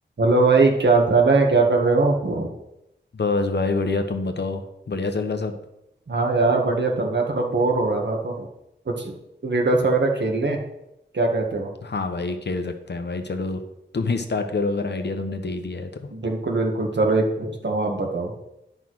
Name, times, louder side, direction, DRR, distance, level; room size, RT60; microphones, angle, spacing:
voice 1, 0.2-2.5 6.1-8.5 8.9-9.1 9.4-10.6 11.1-11.7 16.1-18.3, right 3 dB, 65° right, 1 dB, 1.7 m, -21 dB
voice 2, 3.1-5.6 11.8-13.6 13.9-16.1, left 3 dB, 60° left, 7 dB, 1.1 m, -26 dB
9.5 x 5.6 x 6.2 m, 0.86 s
wide cardioid pair, 90°, 19 cm